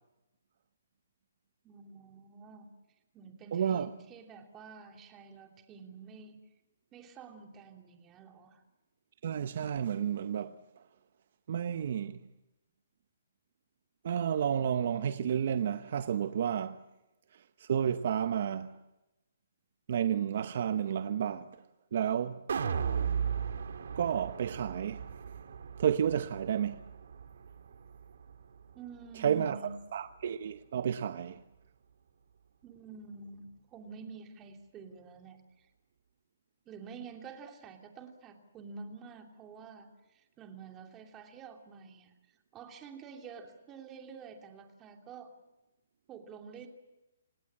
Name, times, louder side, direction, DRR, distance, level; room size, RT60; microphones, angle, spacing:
voice 1, 1.6-2.7 3.1-6.4 6.9-8.6 28.7-29.7 32.6-35.7 36.7-45.3 46.1-46.7, right 5 dB, 15° right, 2.8 m, -49 dB
voice 2, 3.5-3.9 9.2-10.5 11.5-12.2 14.0-16.8 17.6-18.7 19.9-21.5 21.9-22.4 24.0-25.0 25.8-26.8 29.2-29.6 29.9-31.4, right 8 dB, 50° right, 0.8 m, -31 dB
sound 1, 22.5-28.7 29.1-29.2, right 7 dB, 70° right, 1.8 m, -36 dB
28.5 x 17.5 x 8.8 m
hypercardioid pair, 160°, 0 cm